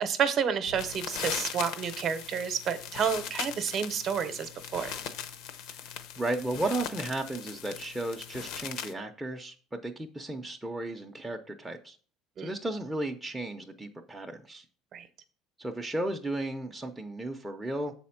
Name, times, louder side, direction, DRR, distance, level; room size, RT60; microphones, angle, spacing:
voice 1, 0.0-4.9 12.4-12.5 14.9-15.1, right 7 dB, 35° right, 12 dB, 0.7 m, -30 dB
sound 1, 0.7-8.9, left 8 dB, 70° left, 0.8 m, -39 dB
voice 2, 6.2-9.5 9.8-12.0 12.4-14.6 15.6-17.9, right 2 dB, 5° right, 2 dB, 0.5 m, -34 dB
7.1 x 4.2 x 5.7 m, 0.41 s
cardioid pair, 160°, 0 cm